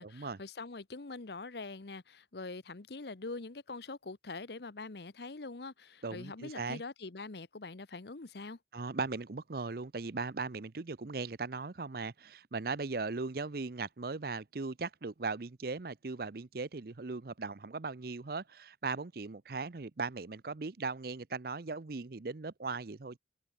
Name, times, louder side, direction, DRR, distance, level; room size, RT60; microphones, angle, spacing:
voice 1, 0.0-8.6, left 3 dB, 65° left, 0.9 m, -44 dB
voice 2, 6.0-6.8 8.7-23.2, right 4 dB, 55° right, 0.7 m, -38 dB
head